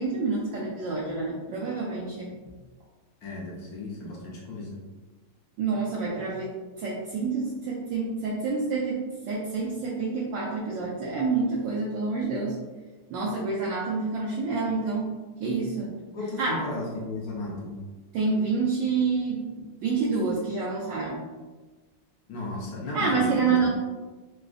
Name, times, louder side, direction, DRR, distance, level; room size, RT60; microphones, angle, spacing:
voice 1, 0.0-2.3 5.6-9.0 9.3-12.5 13.1-15.1 15.4-15.9 16.4-16.6 18.1-21.2 22.9-23.7, right 4 dB, 75° right, -5 dB, 1.1 m, -28 dB
voice 2, 3.2-4.8 16.1-17.8 22.3-23.7, left 2 dB, 80° left, -4 dB, 0.8 m, -35 dB
3.7 x 2.4 x 2.4 m, 1.3 s
omnidirectional pair, 2.4 m